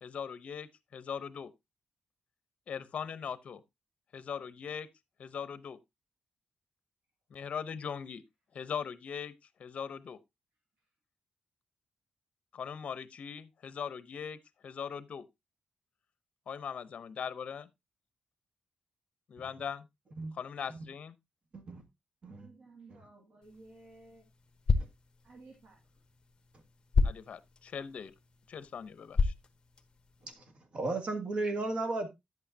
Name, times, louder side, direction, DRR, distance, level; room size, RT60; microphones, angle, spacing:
voice 1, 0.0-1.5 2.7-3.6 4.1-4.9 5.2-5.8 7.3-8.2 8.5-9.3 9.6-10.2 12.5-15.2 16.5-17.7 19.3-19.9 20.3-21.1 27.0-28.1 28.5-29.3, left 7 dB, 55° left, 0.8 m, -40 dB
voice 2, 22.4-24.2 24.7-24.9 25.2-25.8, right 3 dB, 70° right, 2.3 m, -55 dB
sound 1, 23.4-30.3, left 4 dB, 35° left, 1.1 m, -34 dB
voice 3, 30.7-32.1, right 2 dB, 45° right, 1.8 m, -34 dB
10.5 x 8.3 x 2.7 m
wide cardioid pair, 135°, 3 cm